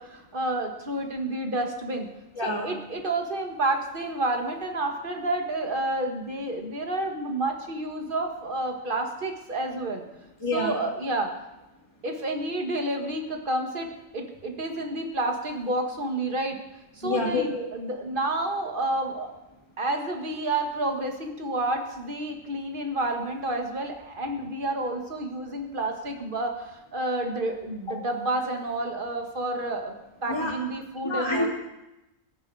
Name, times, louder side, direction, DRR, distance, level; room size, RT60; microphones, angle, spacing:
voice 1, 0.0-2.1 2.4-10.0 10.5-11.3 12.0-16.6 16.9-19.3 19.8-29.9 30.2-31.5, right 2 dB, 40° right, 4 dB, 1.9 m, -30 dB
voice 2, 2.4-2.7 10.4-10.7 17.0-17.7 30.3-30.5 31.0-31.5, left 2 dB, 20° left, -2 dB, 2.2 m, -27 dB
16.5 x 14.0 x 4.8 m, 0.96 s
omnidirectional pair, 1.4 m